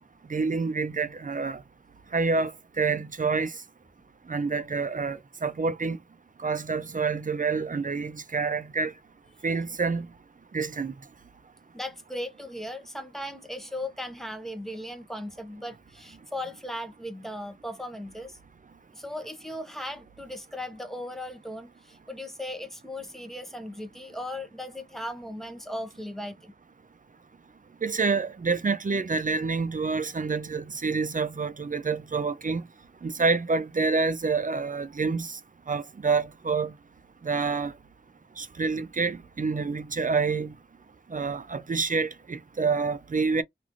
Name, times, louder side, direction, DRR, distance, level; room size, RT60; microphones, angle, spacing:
voice 1, 0.3-1.6 2.1-2.5 2.8-3.5 4.3-6.0 6.4-8.9 9.4-10.1 10.5-10.9 27.8-32.6 33.0-35.4 35.7-36.7 37.2-37.7 38.4-40.5 41.1-43.4, right 4 dB, 40° right, 0.4 m, -27 dB
voice 2, 11.7-18.4 18.9-26.5, left 1 dB, ahead, 0.7 m, -37 dB
3.0 x 2.5 x 2.5 m
wide cardioid pair, 65°, 21 cm